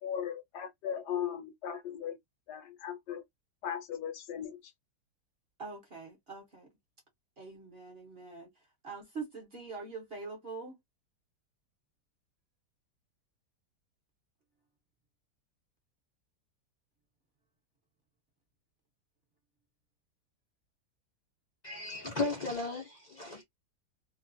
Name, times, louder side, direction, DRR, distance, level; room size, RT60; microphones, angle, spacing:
voice 1, 0.0-2.2 2.5-3.2 3.6-4.7, left 9 dB, 70° left, 1.2 m, -37 dB
voice 2, 5.6-6.7 7.4-8.5 8.8-10.8, right 4 dB, 45° right, 0.9 m, -44 dB
voice 3, 21.6-23.4, left 3 dB, 55° left, 0.4 m, -35 dB
3.0 x 2.2 x 2.5 m
omnidirectional pair, 1.9 m